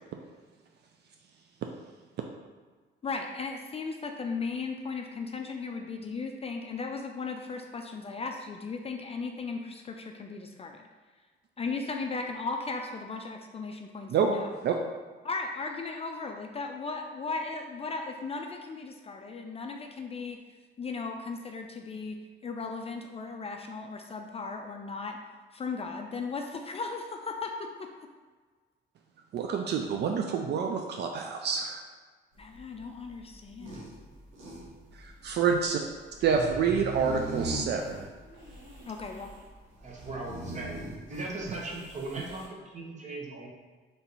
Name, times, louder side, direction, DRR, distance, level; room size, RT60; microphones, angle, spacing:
voice 1, 3.0-10.9 11.6-14.5 15.2-20.4 20.8-25.2 25.5-27.9 32.4-33.8 38.9-39.3, left 4 dB, 30° left, 3 dB, 0.4 m, -36 dB
voice 2, 29.3-31.8 35.0-35.8 36.2-38.0, right 6 dB, 60° right, 3 dB, 0.4 m, -27 dB
sound 1, 32.3-42.5, right 2 dB, 85° right, 1.1 m, -41 dB
voice 3, 39.8-40.8 41.1-43.5, right 2 dB, 35° right, -3 dB, 1.0 m, -38 dB
3.4 x 2.8 x 4.0 m, 1.4 s
cardioid pair, 90°, 20 cm